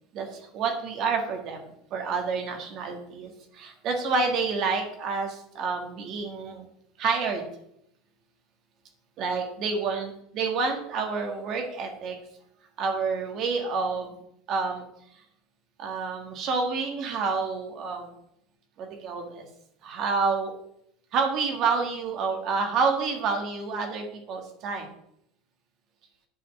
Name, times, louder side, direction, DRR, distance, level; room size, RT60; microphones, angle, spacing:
voice 1, 0.1-6.7 7.0-7.5 9.2-12.2 12.8-14.1 14.5-14.8 15.8-18.1 18.8-19.5 19.8-20.5 21.1-24.9, right 4 dB, 50° right, 3 dB, 1.9 m, -28 dB
8.5 x 4.2 x 6.9 m, 0.74 s
supercardioid pair, 120°, 0 cm